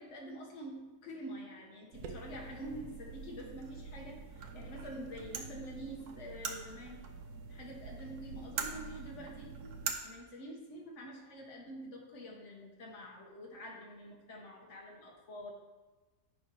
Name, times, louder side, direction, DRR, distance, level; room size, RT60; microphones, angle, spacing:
voice 1, 0.0-7.1 7.5-15.5, equal, 45° left, -1 dB, 1.7 m, -47 dB
sound 1, 1.9-9.9, right 5 dB, 65° right, 1.3 m, -44 dB
11.0 x 4.5 x 4.7 m, 1.2 s
omnidirectional pair, 1.8 m